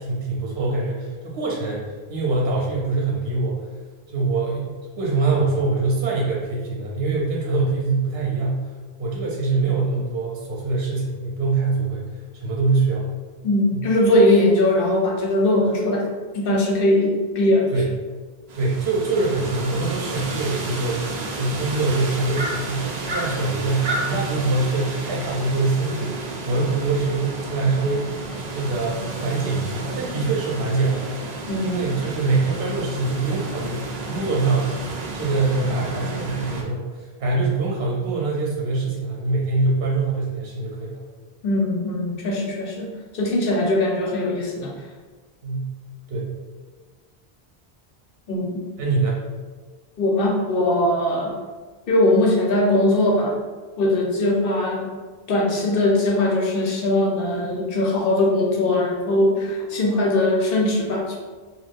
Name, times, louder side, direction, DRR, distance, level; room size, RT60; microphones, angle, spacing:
voice 1, 0.0-3.7 4.1-4.7 5.0-8.7 9.0-12.0 12.3-13.1 13.7-13.8 17.7-17.9 18.5-28.1 28.5-31.0 31.6-34.8 35.1-41.0 45.4-45.7 46.1-46.3 48.8-49.2, right 3 dB, 75° right, -3 dB, 0.9 m, -24 dB
voice 2, 13.4-16.1 16.3-17.7 31.5-31.8 41.4-44.7 48.3-48.6 50.0-51.3 51.9-53.3 53.8-54.9 55.3-61.2, left 1 dB, 65° left, -1 dB, 0.8 m, -20 dB
sound 1, 18.5-36.6, right 2 dB, 55° right, 0.5 m, -31 dB
2.6 x 2.2 x 3.4 m, 1.4 s
omnidirectional pair, 1.1 m